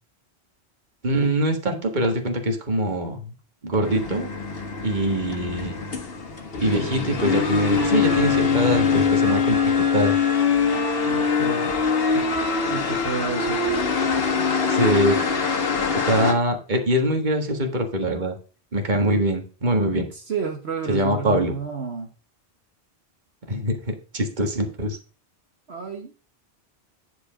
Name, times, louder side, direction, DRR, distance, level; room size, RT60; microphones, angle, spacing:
voice 1, 1.0-3.3 3.6-4.3 4.8-5.8 6.6-10.2 14.7-15.2 15.9-18.4 18.7-20.1 20.9-21.5 23.5-25.0, right 1 dB, 45° right, 4 dB, 1.8 m, -23 dB
sound 1, 3.8-16.3, left 5 dB, 60° left, 1.5 m, -23 dB
voice 2, 11.0-11.7 12.1-12.3 12.7-13.6 20.1-22.1 25.7-26.1, right 5 dB, 70° right, 3 dB, 1.5 m, -30 dB
10.0 x 4.8 x 4.9 m, 0.36 s
omnidirectional pair, 1.1 m